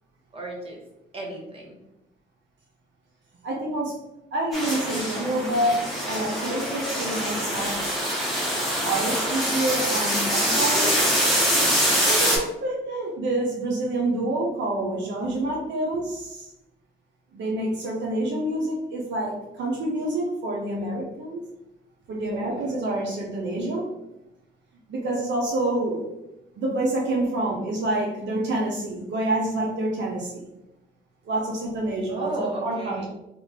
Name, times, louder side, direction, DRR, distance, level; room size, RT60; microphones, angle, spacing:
voice 1, 0.3-0.8 1.1-1.8 10.5-12.1 22.3-22.8 32.1-33.0, right 1 dB, 30° right, -2 dB, 1.1 m, -34 dB
voice 2, 3.4-4.0 4.3-7.8 8.8-11.0 12.1-16.5 17.3-21.4 22.1-23.9 24.9-26.1 26.6-30.5 31.3-33.0, right 1 dB, 65° right, -3 dB, 0.7 m, -27 dB
sound 1, 4.5-12.4, equal, ahead, 1.1 m, -24 dB
3.0 x 2.4 x 3.5 m, 0.93 s
cardioid pair, 90°, 20 cm